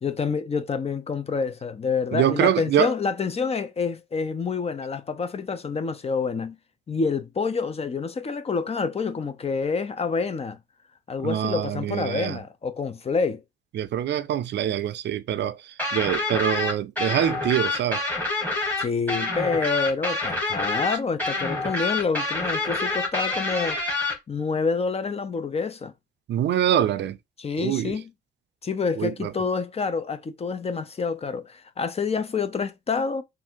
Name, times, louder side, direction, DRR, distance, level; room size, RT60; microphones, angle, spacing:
voice 1, 0.0-6.6 6.9-10.6 11.1-13.4 18.8-23.8 24.3-25.9 27.4-28.1 28.6-33.2, left 5 dB, 30° left, 0.6 m, -27 dB
voice 2, 2.1-2.9 11.2-12.4 13.7-18.1 26.3-27.2 27.6-27.9 29.0-29.3, right 10 dB, 65° right, 0.5 m, -25 dB
sound 1, 15.8-24.1, left 2 dB, 10° left, 1.8 m, -27 dB
3.4 x 2.6 x 4.4 m
cardioid pair, 90°, 20 cm